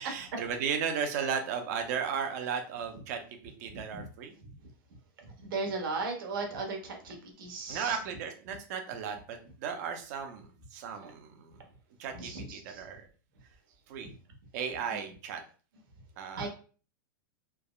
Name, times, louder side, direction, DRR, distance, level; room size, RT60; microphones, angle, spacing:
voice 1, 0.0-3.2 3.6-4.3 7.7-11.5 12.0-13.0 13.9-14.1 14.5-15.4 16.2-16.5, right 7 dB, 50° right, 4 dB, 0.5 m, -35 dB
voice 2, 3.7-4.1 5.2-8.0 11.0-11.1 12.2-12.8 14.0-14.1 14.9-15.0 16.3-16.5, right 3 dB, 75° right, 2 dB, 1.0 m, -37 dB
3.3 x 2.0 x 2.3 m, 0.38 s
supercardioid pair, 160°, 11 cm